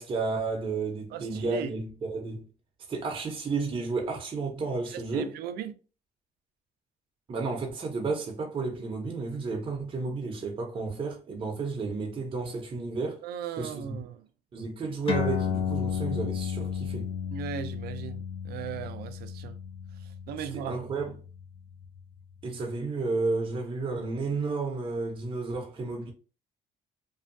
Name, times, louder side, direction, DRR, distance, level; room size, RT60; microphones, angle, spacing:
voice 1, 0.0-2.4 2.9-5.3 7.3-13.2 13.6-14.0 14.5-17.1 20.5-21.1 22.4-26.1, right 3 dB, 30° right, 0.7 m, -32 dB
voice 2, 1.1-1.7 4.8-5.8 13.2-14.3 17.3-19.6 20.0-20.8, right 8 dB, 70° right, 0.4 m, -37 dB
sound 1, 15.1-22.0, left 7 dB, 35° left, 0.6 m, -33 dB
2.6 x 2.3 x 2.6 m
cardioid pair, 110°, 17 cm